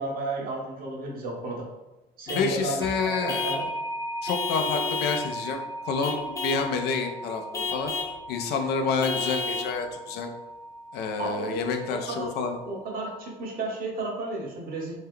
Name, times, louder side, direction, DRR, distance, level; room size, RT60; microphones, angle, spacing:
voice 1, 0.0-1.7 2.2-3.6 11.2-12.3 12.7-15.0, right 2 dB, 60° right, -1 dB, 0.9 m, -33 dB
voice 2, 2.3-3.5 4.2-7.9 8.3-10.3 10.9-12.6, left 5 dB, 75° left, 4 dB, 0.5 m, -29 dB
Vehicle horn car horn honking / Truck, 2.3-2.5 3.3-3.7 4.3-5.3 6.0-6.7 7.5-8.2 9.0-9.7, left 4 dB, 20° left, 0.5 m, -31 dB
sound 1, 2.8-13.4, right 1 dB, 25° right, 0.6 m, -38 dB
2.8 x 2.2 x 3.6 m, 1.0 s
cardioid pair, 110°, 17 cm